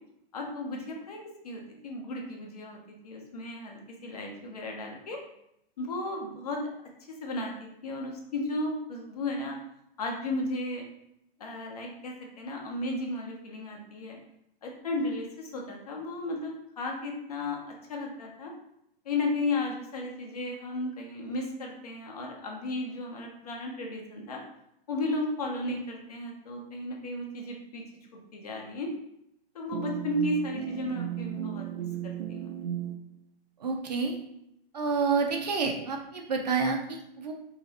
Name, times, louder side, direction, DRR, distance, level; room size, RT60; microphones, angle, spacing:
voice 1, 0.3-5.2 5.8-6.6 7.1-9.6 10.0-10.8 11.4-14.2 14.6-18.5 19.0-24.4 24.9-27.8 28.3-28.9 29.5-31.7 32.0-32.5, left 2 dB, 40° left, 0 dB, 0.8 m, -34 dB
sound 1, 29.7-33.0, right 10 dB, 85° right, 0.7 m, -35 dB
voice 2, 33.6-34.2 34.7-37.3, right 4 dB, 45° right, 3 dB, 0.5 m, -29 dB
3.0 x 2.9 x 4.0 m, 0.78 s
hypercardioid pair, 180°, 30 cm